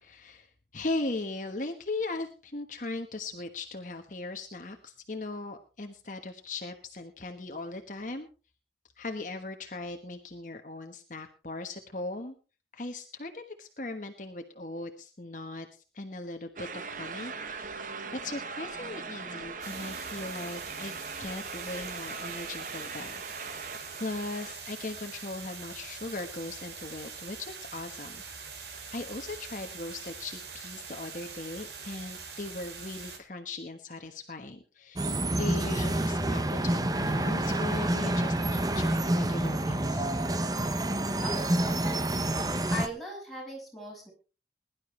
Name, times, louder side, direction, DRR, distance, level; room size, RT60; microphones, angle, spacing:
voice 1, 0.0-8.3 9.0-12.3 12.7-23.7 24.0-28.2 28.9-40.1, left 2 dB, 45° left, 5 dB, 1.3 m, -39 dB
sound 1, 16.6-24.6, right 4 dB, 45° right, 1.0 m, -40 dB
sound 2, 19.6-33.2, right 5 dB, 70° right, 2.9 m, -44 dB
sound 3, 35.0-42.9, right 1 dB, 20° right, 0.8 m, -28 dB
voice 2, 41.2-42.3 42.7-44.1, equal, ahead, -3 dB, 6.1 m, -39 dB
21.0 x 11.5 x 3.2 m, 0.33 s
head